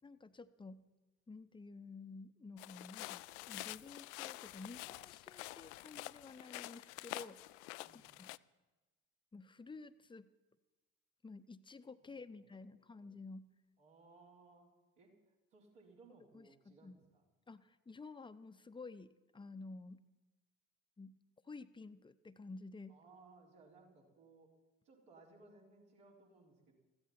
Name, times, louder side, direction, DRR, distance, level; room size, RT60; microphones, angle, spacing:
voice 1, 0.0-0.8 1.3-7.4 7.9-8.3 9.3-10.3 11.2-13.5 16.3-17.0 17.5-20.0 21.0-21.2 21.4-23.0, left 3 dB, 15° left, 12 dB, 0.8 m, -52 dB
sound 1, 2.6-8.4, left 21 dB, 65° left, 0.5 m, -48 dB
voice 2, 7.8-8.1 12.0-12.4 13.8-14.7 15.0-15.1 15.5-17.2 22.9-24.5 24.8-26.7, right 3 dB, 70° right, -3 dB, 4.0 m, -62 dB
21.0 x 15.0 x 4.3 m, 1.2 s
figure-of-eight pair, 50°, 38 cm